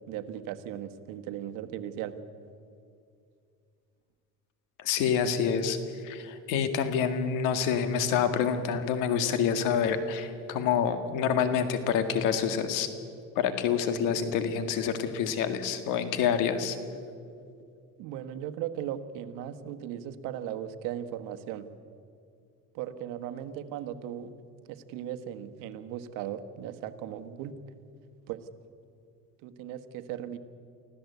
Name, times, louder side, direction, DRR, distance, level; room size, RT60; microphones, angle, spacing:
voice 1, 0.1-2.1 18.0-21.7 22.7-24.3 24.7-27.5 28.3-28.4 29.4-30.4, right 10 dB, 85° right, 9 dB, 1.4 m, -37 dB
voice 2, 4.8-5.8 6.0-12.9 13.4-16.8, left 7 dB, 85° left, 9 dB, 2.0 m, -27 dB
25.0 x 15.5 x 8.2 m, 2.4 s
cardioid pair, 110°, 31 cm